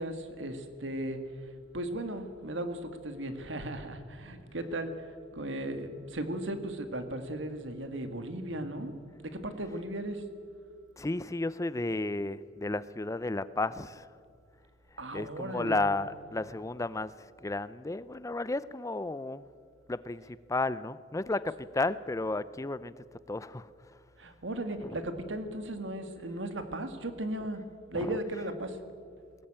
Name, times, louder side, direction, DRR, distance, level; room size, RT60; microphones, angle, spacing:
voice 1, 0.0-8.9 9.2-10.2 15.0-15.9 24.2-27.6 27.9-28.8, right 1 dB, 85° right, 8 dB, 1.9 m, -36 dB
voice 2, 11.0-14.1 15.1-19.4 19.9-22.9 23.3-24.0 24.8-25.0 27.9-28.2, left 2 dB, 15° left, 16 dB, 0.5 m, -33 dB
21.0 x 18.0 x 8.8 m, 2.2 s
head